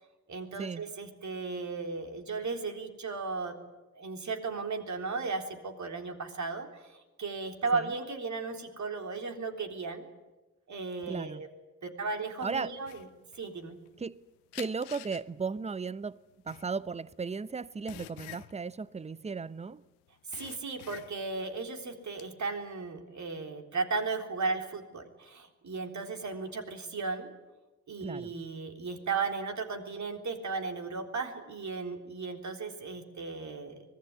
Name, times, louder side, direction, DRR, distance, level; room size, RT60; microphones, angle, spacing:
voice 1, 0.3-3.5 4.0-10.1 10.7-11.5 11.8-13.0 13.4-13.8 20.4-27.3 27.9-33.8, right 4 dB, 40° right, 3.8 m, -35 dB
voice 2, 11.1-11.4 12.4-12.7 14.0-14.2 14.5-16.2 16.4-19.8 28.0-28.3, right 5 dB, 15° right, 0.8 m, -36 dB
sound 1, 12.8-14.2 14.5-19.8 20.1-21.4 21.8-22.3, left 19 dB, 65° left, 1.0 m, -48 dB
24.5 x 21.0 x 9.7 m
figure-of-eight pair, 40°, 42 cm